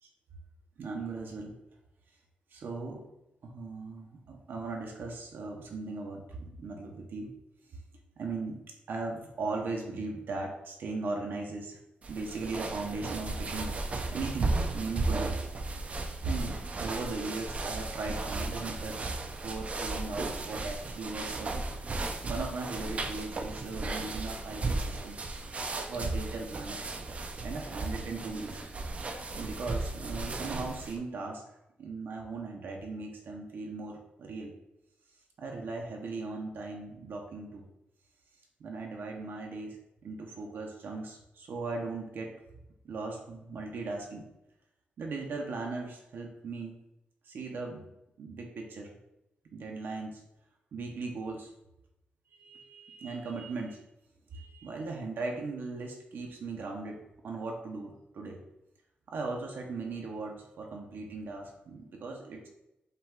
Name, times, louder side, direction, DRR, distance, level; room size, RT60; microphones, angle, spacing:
voice 1, 0.8-1.6 2.5-3.0 3.4-7.3 7.7-7.8 8.2-8.6 8.9-11.8 12.1-13.7 14.1-15.4 16.2-19.1 19.4-21.7 22.2-25.2 25.9-26.8 27.4-28.6 29.4-31.4 31.8-34.5 35.4-37.6 38.6-42.3 42.8-44.2 45.0-46.8 47.2-47.8 48.2-48.9 49.5-50.2 50.7-51.5 52.4-53.8 54.3-58.4 59.1-62.5, right 3 dB, 70° right, 1 dB, 0.7 m, -38 dB
sound 1, 12.0-31.0, right 3 dB, 35° right, 0.4 m, -35 dB
5.5 x 2.3 x 3.6 m, 0.89 s
wide cardioid pair, 125°, 4 cm